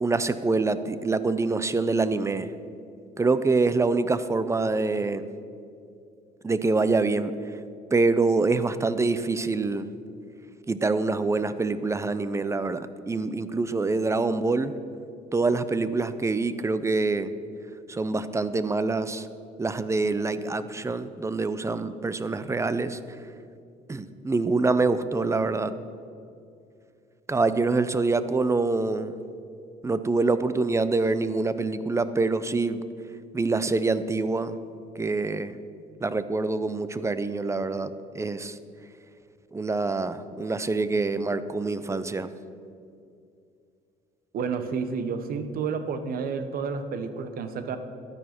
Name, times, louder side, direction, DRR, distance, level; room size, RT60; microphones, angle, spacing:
voice 1, 0.0-2.5 3.2-5.2 6.4-7.3 7.9-9.9 10.7-14.7 15.3-17.3 17.9-19.3 19.6-23.0 23.9-25.7 27.3-29.1 29.8-32.8 33.3-34.5 35.0-35.6 36.0-38.6 39.5-42.3, right 3 dB, 15° right, 13 dB, 0.5 m, -25 dB
voice 2, 44.3-47.8, right 5 dB, 60° right, 10 dB, 1.1 m, -30 dB
12.5 x 9.4 x 5.9 m, 2.5 s
cardioid pair, 110°, 17 cm